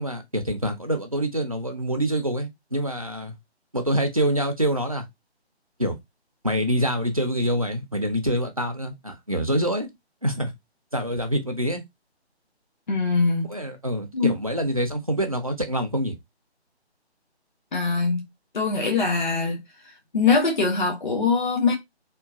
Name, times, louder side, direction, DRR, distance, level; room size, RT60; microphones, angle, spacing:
voice 1, 0.0-3.4 3.7-5.1 5.8-6.0 6.4-9.9 10.2-10.5 10.9-11.8 13.5-16.2, equal, 35° right, 0.4 m, -26 dB
voice 2, 12.9-13.5 14.1-14.3 17.7-18.3 18.5-19.6 20.1-21.7, left 4 dB, 45° left, 0.7 m, -22 dB
3.0 x 2.1 x 2.3 m
figure-of-eight pair, 150°, 33 cm